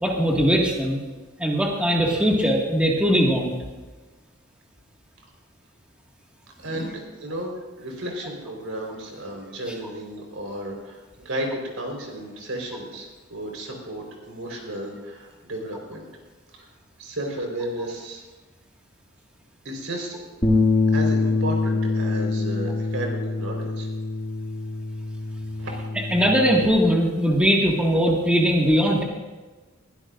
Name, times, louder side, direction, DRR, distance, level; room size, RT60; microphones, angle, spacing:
voice 1, 0.0-1.0 1.4-3.5 6.7-6.9 26.1-29.0, equal, 5° right, -2 dB, 1.9 m, -20 dB
voice 2, 6.6-16.1 16.6-16.7 17.0-18.2 19.6-20.2 20.9-23.9 25.6-25.8, right 1 dB, 90° right, 1 dB, 4.4 m, -33 dB
Bass guitar, 20.4-26.7, left 3 dB, 25° left, 2.0 m, -24 dB
21.0 x 16.0 x 2.6 m, 1.3 s
head